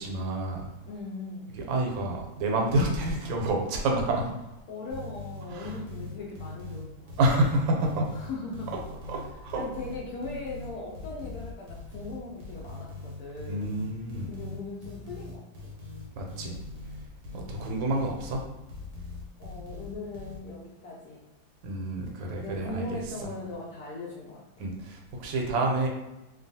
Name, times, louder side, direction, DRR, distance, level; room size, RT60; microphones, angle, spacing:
voice 1, 0.0-0.7 1.5-4.2 5.5-5.8 7.2-8.1 9.1-9.6 13.5-14.3 16.1-16.5 17.3-18.4 21.6-23.0 24.6-25.9, right 1 dB, 80° right, 1 dB, 1.3 m, -28 dB
voice 2, 0.9-1.5 4.2-4.3 4.7-7.1 8.1-8.7 9.5-13.7 14.3-15.7 17.3-17.7 19.4-21.2 22.4-24.7, left 2 dB, 80° left, -4 dB, 0.8 m, -39 dB
sound 1, 4.9-20.4, left 3 dB, 65° right, 1.0 m, -41 dB
2.9 x 2.3 x 2.6 m, 0.99 s
omnidirectional pair, 2.1 m